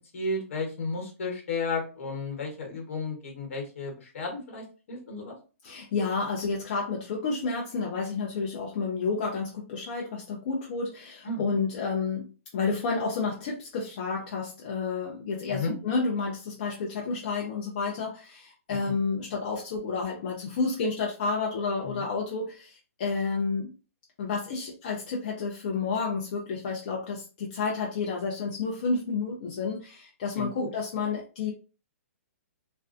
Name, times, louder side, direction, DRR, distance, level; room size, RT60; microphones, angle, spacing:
voice 1, 0.1-5.3 11.2-11.4 15.5-15.7 21.8-22.0 30.3-30.7, left 3 dB, 55° left, 1 dB, 1.1 m, -33 dB
voice 2, 5.6-12.3 12.5-23.7 24.2-31.5, left 4 dB, 35° left, -1 dB, 0.4 m, -30 dB
2.4 x 2.1 x 2.4 m, 0.34 s
hypercardioid pair, 170°, 8 cm